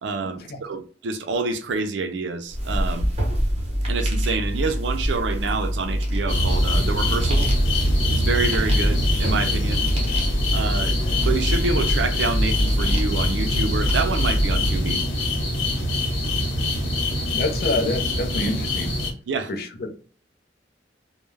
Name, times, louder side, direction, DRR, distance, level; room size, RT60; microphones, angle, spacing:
voice 1, 0.0-3.1 3.9-7.5 8.1-9.9 10.5-15.0 19.3-19.5, right 4 dB, 70° right, 0.4 m, -27 dB
sound 1, 2.5-14.9, equal, 35° right, 0.8 m, -24 dB
sound 2, 6.3-19.1, left 1 dB, 90° left, 0.8 m, -25 dB
voice 2, 17.3-19.0 19.5-20.0, left 2 dB, 60° left, 0.5 m, -27 dB
2.2 x 2.1 x 3.2 m
head